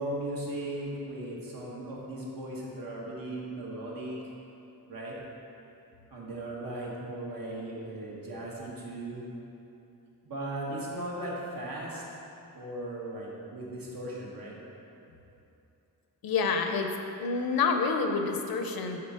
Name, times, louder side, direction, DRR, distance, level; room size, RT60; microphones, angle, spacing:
voice 1, 0.0-4.2 4.9-5.2 6.1-9.2 10.2-12.0 12.5-14.6, right 1 dB, 70° right, -4 dB, 1.3 m, -37 dB
voice 2, 16.2-16.9 17.2-19.0, left 5 dB, 80° left, 5 dB, 0.6 m, -28 dB
6.7 x 4.0 x 5.5 m, 2.8 s
wide cardioid pair, 150°, 36 cm